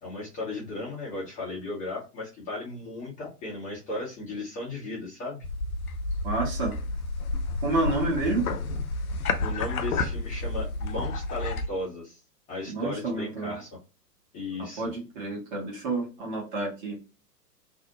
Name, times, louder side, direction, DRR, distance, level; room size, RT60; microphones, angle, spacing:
voice 1, 0.0-5.4 9.4-12.2 12.5-13.7 14.3-14.9, left 2 dB, 15° left, -5 dB, 0.7 m, -36 dB
sound 1, 5.4-11.7, left 3 dB, 60° left, 0.6 m, -30 dB
voice 2, 6.2-6.7 7.6-8.5 12.7-13.6 14.8-17.0, right 2 dB, 30° right, -2 dB, 1.2 m, -29 dB
2.6 x 2.0 x 2.8 m, 0.31 s
figure-of-eight pair, 105°, 48 cm